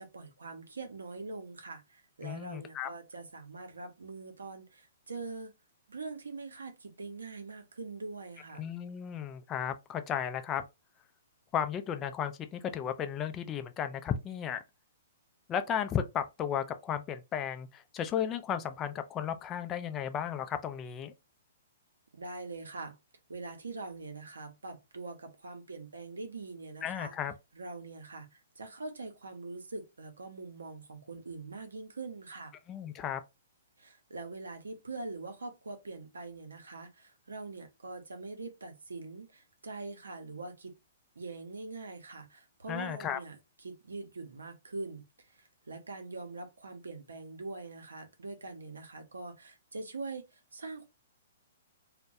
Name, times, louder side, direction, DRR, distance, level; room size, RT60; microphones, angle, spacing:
voice 1, 0.0-5.5 5.9-8.7 22.1-23.0 23.3-27.1 27.5-32.5 33.8-40.7 41.2-43.4 43.6-50.8, right 3 dB, 85° right, 0.7 m, -43 dB
voice 2, 2.2-2.9 8.6-10.6 11.5-14.6 15.5-21.1 26.8-27.3 32.7-33.2 42.7-43.2, left 8 dB, 25° left, 0.3 m, -34 dB
2.2 x 2.1 x 2.6 m
hypercardioid pair, 125°, 0 cm